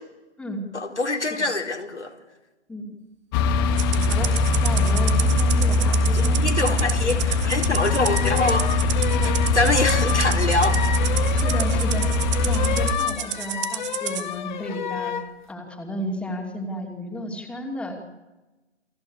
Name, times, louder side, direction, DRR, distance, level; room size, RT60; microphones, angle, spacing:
voice 1, 0.7-2.1 6.1-8.7 9.2-10.8, left 2 dB, 80° left, 3 dB, 4.3 m, -24 dB
sound 1, 3.3-12.9, left 2 dB, 20° left, 1.5 m, -21 dB
Rattle (instrument), 3.8-14.2, right 13 dB, 25° right, 1.6 m, -31 dB
voice 2, 4.0-6.8 9.1-9.4 11.3-12.1 12.4-15.1 15.5-17.9, equal, 5° left, 2 dB, 2.7 m, -33 dB
sound 2, 7.8-15.3, left 8 dB, 40° left, 1.8 m, -31 dB
29.0 x 21.5 x 8.6 m, 1.1 s
figure-of-eight pair, 135°, 34 cm